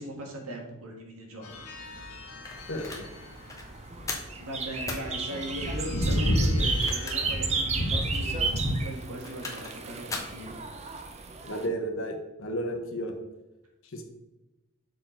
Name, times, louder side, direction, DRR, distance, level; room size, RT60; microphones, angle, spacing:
voice 1, 0.0-1.6 4.4-10.6, right 1 dB, 70° right, 1 dB, 1.5 m, -39 dB
sound 1, 1.4-8.8, equal, 80° left, 1.1 m, -31 dB
sound 2, 2.5-3.1 3.5-3.7 4.1-4.4 4.9-5.1 6.6-7.4 7.8-7.9 9.0-9.8 10.1-10.4, left 3 dB, 15° left, 0.9 m, -37 dB
sound 3, 2.5-11.7, right 4 dB, 30° right, 0.5 m, -34 dB
voice 2, 11.5-13.1 13.9-14.0, right 1 dB, 60° left, 4 dB, 1.0 m, -32 dB
6.4 x 4.5 x 4.4 m, 0.99 s
head